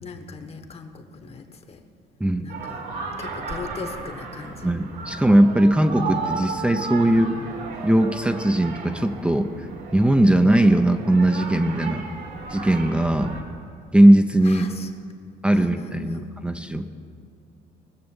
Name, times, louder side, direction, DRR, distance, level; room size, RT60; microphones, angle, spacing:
voice 1, 0.0-1.8 2.4-2.8 3.2-4.7 7.0-7.3 14.4-14.9 15.5-16.3, left 3 dB, 35° left, 7 dB, 1.3 m, -38 dB
sound 1, 2.5-13.4, right 4 dB, 80° right, 2.7 m, -34 dB
voice 2, 4.6-7.3 7.8-9.5 9.9-12.0 12.5-13.4 13.9-14.7 15.4-16.9, right 1 dB, 5° right, 7 dB, 0.6 m, -19 dB
20.0 x 6.8 x 7.2 m, 2.5 s
cardioid pair, 110°, 17 cm